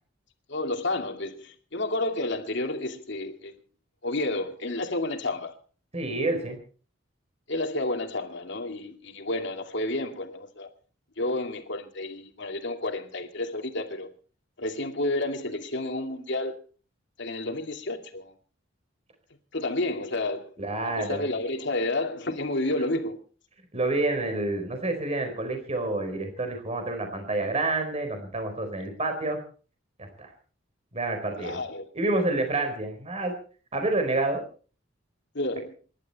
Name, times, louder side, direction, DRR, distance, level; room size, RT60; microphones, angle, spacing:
voice 1, 0.5-3.5 4.0-5.5 7.5-10.7 11.2-14.1 14.6-16.5 17.2-18.3 19.5-20.5 21.0-23.2 31.4-31.9 35.3-35.8, left 2 dB, 65° left, 2.5 m, -30 dB
voice 2, 5.9-6.6 20.6-21.3 23.7-29.4 30.0-30.3 30.9-31.6 31.9-33.3 33.7-34.4, right 2 dB, 35° right, 4.2 m, -28 dB
27.5 x 12.0 x 4.2 m
head